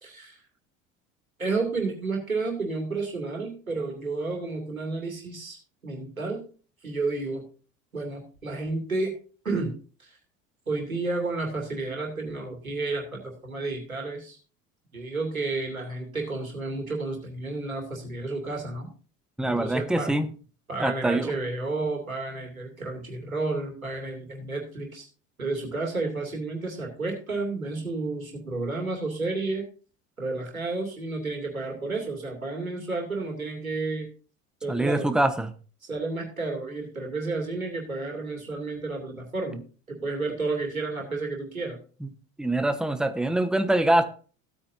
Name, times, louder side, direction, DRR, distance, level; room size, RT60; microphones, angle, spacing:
voice 1, 0.0-0.4 1.4-5.6 5.8-6.4 6.8-7.4 7.9-9.1 9.4-9.7 10.0-10.2 10.7-14.4 14.9-18.9 19.5-20.1 20.7-25.1 25.4-29.7 30.2-34.1 34.6-35.1 35.8-41.8, right 3 dB, 90° right, 1 dB, 2.7 m, -31 dB
voice 2, 19.4-20.3 20.8-21.3 34.7-35.5 42.0-42.1 42.4-44.1, right 1 dB, ahead, 9 dB, 1.1 m, -24 dB
15.5 x 8.8 x 2.7 m, 0.37 s
figure-of-eight pair, 70°, 41 cm